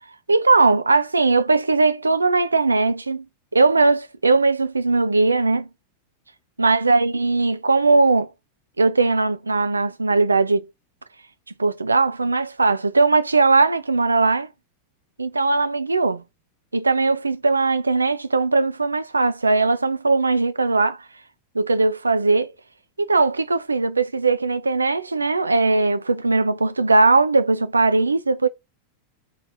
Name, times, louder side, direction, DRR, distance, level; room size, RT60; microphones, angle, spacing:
voice 1, 0.3-3.2 3.5-5.7 6.6-8.3 8.8-10.7 11.6-14.5 15.2-16.2 16.7-21.0 21.5-22.5 23.0-28.5, right 3 dB, 80° right, 0.4 m, -19 dB
3.8 x 3.3 x 4.2 m
figure-of-eight pair, 90°, 0 cm